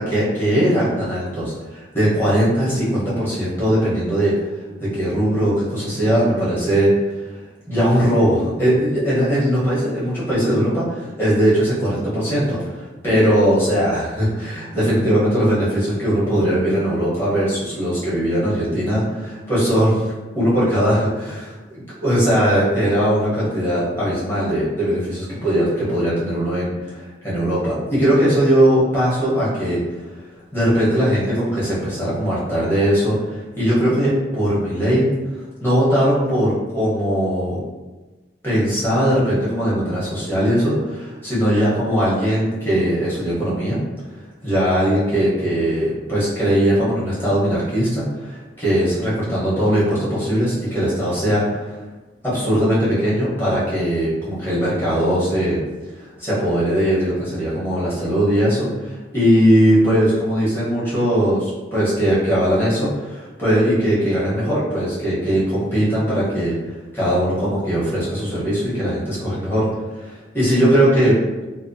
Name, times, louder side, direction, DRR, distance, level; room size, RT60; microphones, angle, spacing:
voice 1, 0.0-7.3 7.7-20.1 20.3-30.0 30.5-35.1 35.6-37.6 38.4-43.8 44.4-51.8 52.2-55.6 55.9-69.7 69.9-71.2, equal, 15° left, -9 dB, 0.9 m, -20 dB
2.8 x 2.0 x 2.6 m, 1.2 s
head